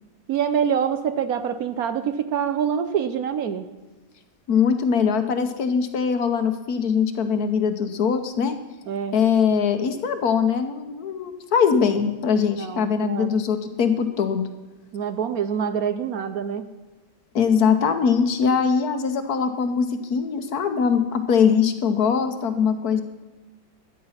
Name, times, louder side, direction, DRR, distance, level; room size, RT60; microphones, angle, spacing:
voice 1, 0.3-3.6 8.9-9.2 12.6-13.3 14.9-16.6, right 8 dB, 65° right, 10 dB, 1.1 m, -25 dB
voice 2, 4.5-8.6 9.1-14.5 17.3-23.0, left 6 dB, 65° left, 8 dB, 1.5 m, -22 dB
13.0 x 10.0 x 5.7 m, 1.2 s
omnidirectional pair, 1.8 m